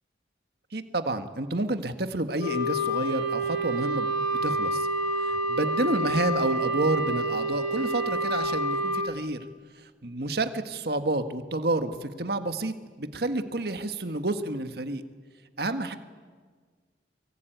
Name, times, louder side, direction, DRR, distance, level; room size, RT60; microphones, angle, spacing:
voice 1, 0.7-4.1 4.4-4.9 5.2-9.4 10.0-15.0 15.6-16.0, right 2 dB, 60° right, 9 dB, 1.6 m, -29 dB
Wind instrument woodwind instrument, 2.4-9.1, right 1 dB, 70° left, 5.5 m, -28 dB
24.5 x 23.0 x 9.3 m, 1.5 s
head